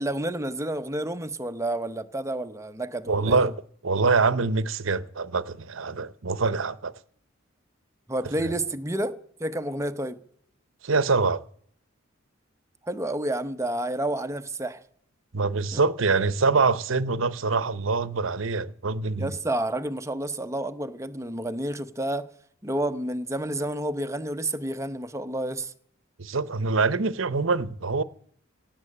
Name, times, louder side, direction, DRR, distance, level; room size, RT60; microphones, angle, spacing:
voice 1, 0.0-3.5 8.1-10.2 12.8-14.8 15.7-15.8 19.2-22.3 22.6-25.7, right 1 dB, 15° right, 0.8 m, -30 dB
voice 2, 3.1-3.5 3.8-6.9 10.8-11.4 15.3-19.3 26.2-28.0, right 4 dB, 70° right, 0.8 m, -24 dB
17.5 x 7.6 x 8.7 m
head